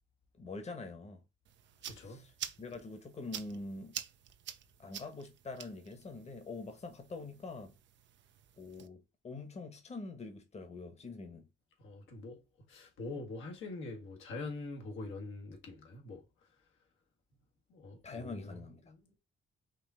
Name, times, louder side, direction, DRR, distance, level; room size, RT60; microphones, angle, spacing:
voice 1, 0.4-1.2 1.9-2.3 2.6-3.9 4.8-7.7 8.6-11.5 18.0-18.8, left 3 dB, 35° left, 1.2 m, -45 dB
sound 1, 1.4-8.9, right 9 dB, 65° right, 0.7 m, -48 dB
voice 2, 1.8-2.3 11.8-12.4 12.7-16.2 17.7-19.2, left 3 dB, 80° left, 1.7 m, -44 dB
5.0 x 2.8 x 3.6 m
cardioid pair, 90°, 20 cm